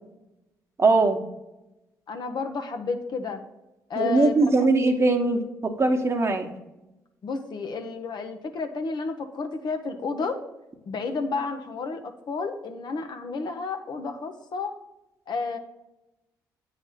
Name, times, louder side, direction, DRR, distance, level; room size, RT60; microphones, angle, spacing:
voice 1, 0.8-1.2 3.9-6.5, right 3 dB, 35° right, 3 dB, 1.1 m, -21 dB
voice 2, 2.1-3.4 3.9-4.5 7.2-10.4 10.9-14.7 15.3-15.6, left 4 dB, 60° left, 6 dB, 0.8 m, -31 dB
8.8 x 3.3 x 5.7 m, 0.95 s
supercardioid pair, 55°, 8 cm